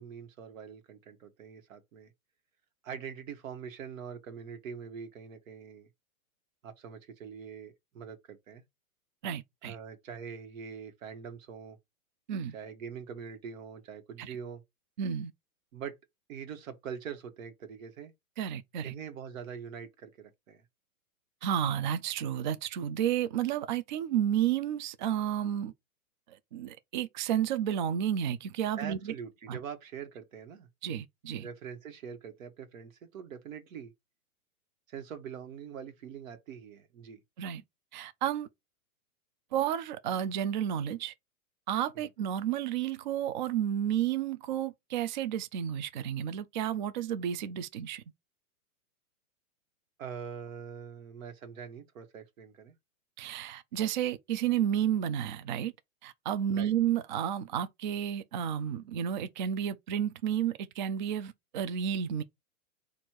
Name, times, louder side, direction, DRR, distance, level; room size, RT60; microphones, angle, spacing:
voice 1, 0.0-2.1 2.8-5.9 6.6-8.6 9.6-11.8 12.5-14.6 15.7-15.9 16.3-18.1 18.8-20.6 28.8-30.7 31.4-33.9 34.9-37.2 41.9-42.1 50.0-52.7 56.5-56.7, right 7 dB, 65° right, 1.4 m, -43 dB
voice 2, 9.2-9.8 12.3-12.5 14.2-14.4 15.0-15.3 18.4-18.9 21.4-25.7 26.3-29.1 29.5-29.6 30.8-31.5 37.4-37.6 37.9-38.5 39.5-41.1 41.7-48.0 53.2-55.7 56.0-62.2, right 10 dB, 35° right, 0.4 m, -31 dB
4.3 x 2.6 x 4.6 m
hypercardioid pair, 145°, 43 cm